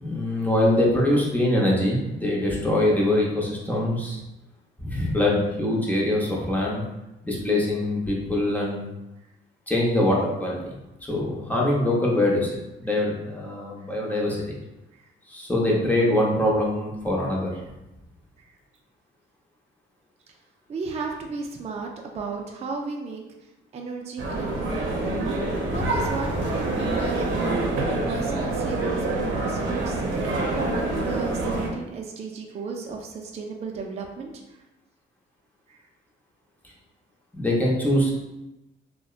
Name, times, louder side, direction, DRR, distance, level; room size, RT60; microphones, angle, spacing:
voice 1, 0.0-4.2 4.8-6.8 7.2-8.8 9.7-10.6 11.0-14.4 15.3-17.5 36.6-36.7 37.3-38.1, left 1 dB, 10° left, -3 dB, 0.7 m, -23 dB
voice 2, 20.7-24.7 25.7-30.0 30.4-34.6 35.7-35.9, right 4 dB, 35° right, 1 dB, 0.4 m, -35 dB
sound 1, 24.2-31.7, right 2 dB, 80° right, 0.6 m, -26 dB
sound 2, 25.7-30.8 31.2-31.3, left 2 dB, 75° left, 0.6 m, -37 dB
2.7 x 2.1 x 2.3 m, 0.96 s
cardioid pair, 90°, 20 cm